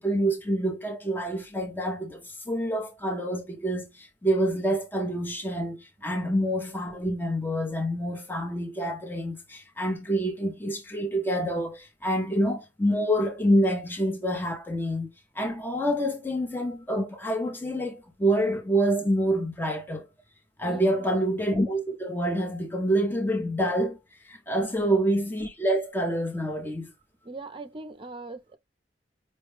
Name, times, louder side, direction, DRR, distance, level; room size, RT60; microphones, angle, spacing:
voice 1, 0.0-15.1 15.3-20.1 20.6-26.9, equal, 10° left, 0.6 m, -27 dB
voice 2, 20.6-21.1 24.6-24.9 27.2-28.6, right 2 dB, 30° right, 0.6 m, -41 dB
5.2 x 2.2 x 3.2 m
head